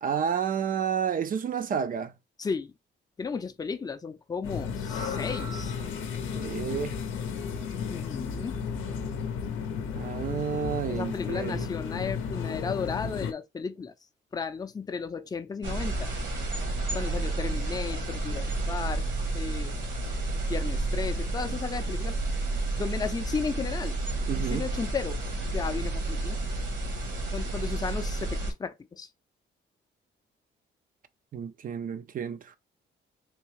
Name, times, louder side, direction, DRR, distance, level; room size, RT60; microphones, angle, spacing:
voice 1, 0.0-2.1 6.3-7.0 9.9-11.7 24.3-24.7 31.3-32.6, right 8 dB, 45° right, 0.4 m, -30 dB
voice 2, 2.4-2.7 3.2-5.8 7.9-8.6 10.9-13.9 14.3-16.1 16.9-19.0 19.3-19.8 20.5-22.2 22.8-24.0 24.4-25.2 25.5-26.4 27.3-29.1, left 5 dB, 20° left, 0.5 m, -34 dB
sound 1, 4.4-13.3, left 6 dB, 85° left, 0.6 m, -33 dB
sound 2, 4.8-8.1, right 3 dB, 85° right, 1.2 m, -48 dB
sound 3, 15.6-28.5, right 2 dB, 65° right, 1.3 m, -31 dB
3.5 x 2.7 x 3.0 m
cardioid pair, 90°, 20 cm